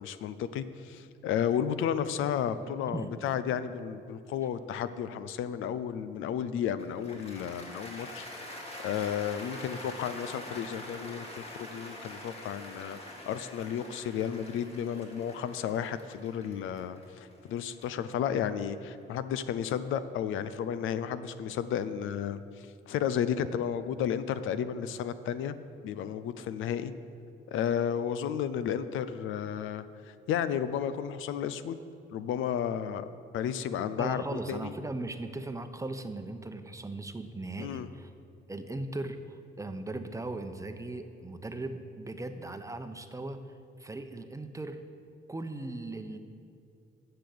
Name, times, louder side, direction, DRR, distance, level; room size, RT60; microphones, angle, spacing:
voice 1, 0.0-8.3 8.8-25.6 25.8-26.9 27.5-29.8 30.3-31.8 32.1-33.1 33.3-34.7 37.6-37.9, left 8 dB, 85° left, 13 dB, 0.6 m, -33 dB
Cheering / Applause, 6.8-19.0, left 1 dB, 30° left, 2.4 m, -45 dB
voice 2, 34.0-38.1 38.5-43.4 43.8-44.8 45.3-46.2, right 2 dB, 15° right, 8 dB, 0.8 m, -38 dB
10.5 x 6.8 x 7.8 m, 2.5 s
cardioid pair, 90°, 20 cm